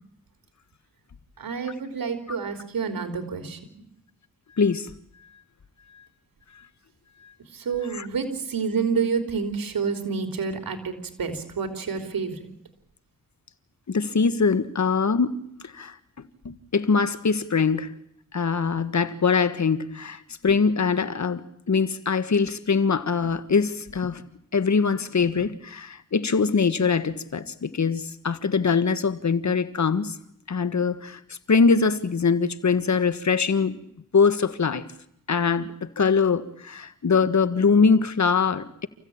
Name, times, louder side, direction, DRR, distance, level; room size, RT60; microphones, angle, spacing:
voice 1, 1.4-3.6 7.5-12.5, right 5 dB, 85° right, 3.6 m, -28 dB
voice 2, 4.6-4.9 5.9-6.0 7.9-8.1 13.9-15.3 15.6-17.9 18.3-24.2 24.5-30.2 30.5-33.8 34.1-34.9 35.3-38.9, left 5 dB, 55° left, 1.6 m, -23 dB
29.0 x 16.0 x 8.8 m
cardioid pair, 55°, 34 cm